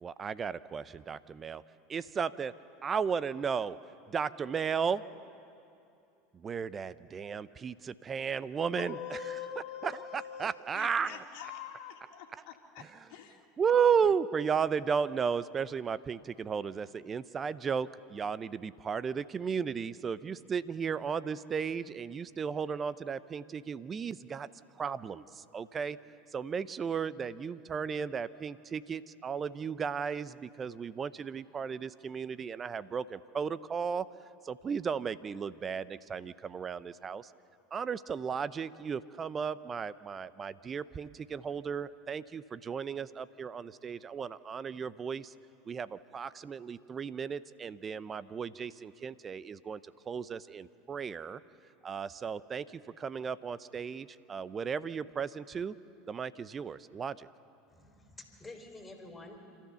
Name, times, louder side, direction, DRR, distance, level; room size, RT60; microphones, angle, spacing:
voice 1, 0.0-1.6 1.9-2.5 2.8-3.8 4.1-5.0 6.3-11.2 12.8-13.1 13.6-24.5 24.8-26.0 26.3-34.1 34.4-37.3 37.7-45.3 45.7-49.8 50.1-51.4 51.8-55.7 56.1-57.3, right 6 dB, 30° right, 16 dB, 0.7 m, -34 dB
voice 2, 8.8-10.5 10.7-12.8 13.1-13.4, left 8 dB, 65° left, 1 dB, 2.1 m, -43 dB
voice 3, 57.7-59.4, left 2 dB, 15° left, 3 dB, 4.1 m, -49 dB
28.0 x 13.5 x 7.0 m, 2.6 s
hypercardioid pair, 85°, 0 cm